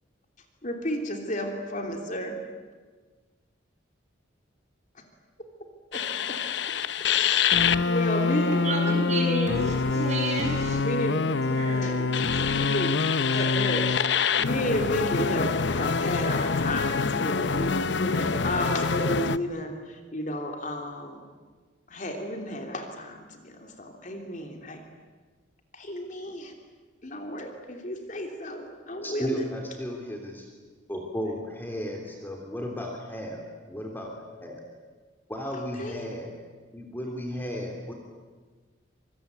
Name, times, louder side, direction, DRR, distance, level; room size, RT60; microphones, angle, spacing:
voice 1, 0.6-2.4 5.9-6.4 7.3-9.7 10.7-11.2 11.8-13.0 13.3-21.2 21.9-24.8 25.7-26.5 27.0-29.4 35.8-36.1, equal, 40° left, 3 dB, 3.1 m, -32 dB
sound 1, 5.9-19.4, left 5 dB, 65° left, 0.8 m, -25 dB
voice 2, 8.5-10.8 11.4-12.8 13.3-13.4, right 1 dB, 35° right, 0 dB, 7.1 m, -32 dB
voice 3, 29.0-30.5 30.9-34.1 34.4-34.6 35.3-36.3 36.7-37.9, equal, 10° left, 1 dB, 3.2 m, -34 dB
25.5 x 22.5 x 9.5 m, 1.4 s
head